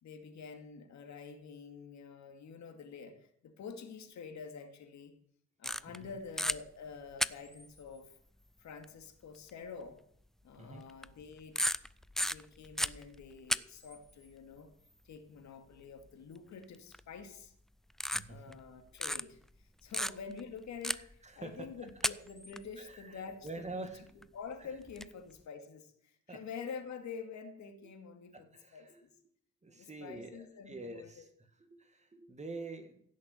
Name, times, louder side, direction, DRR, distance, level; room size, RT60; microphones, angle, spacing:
voice 1, 0.0-5.2 5.6-8.2 8.6-10.0 10.4-11.6 12.2-14.7 15.0-17.5 18.3-21.0 21.4-28.5 28.7-29.1 29.7-31.2, left 5 dB, 65° left, 6 dB, 2.4 m, -47 dB
sound 1, 5.6-6.1 6.4-6.6 7.2-7.7 8.8-8.9 9.5-9.6 10.9-11.2 11.6-13.6 13.8-14.0 16.9-17.2 18.0-18.7 19.0-19.2 19.9-20.4 20.8-21.2 21.9-22.6 24.2-24.3 24.8-25.0, equal, ahead, 0.4 m, -33 dB
voice 2, 18.1-18.6 20.9-21.7 22.8-24.0 24.6-24.7 26.3-26.4 28.3-29.0 29.6-33.0, right 3 dB, 20° right, 7 dB, 2.1 m, -47 dB
15.5 x 6.5 x 8.5 m, 0.66 s
cardioid pair, 90°, 30 cm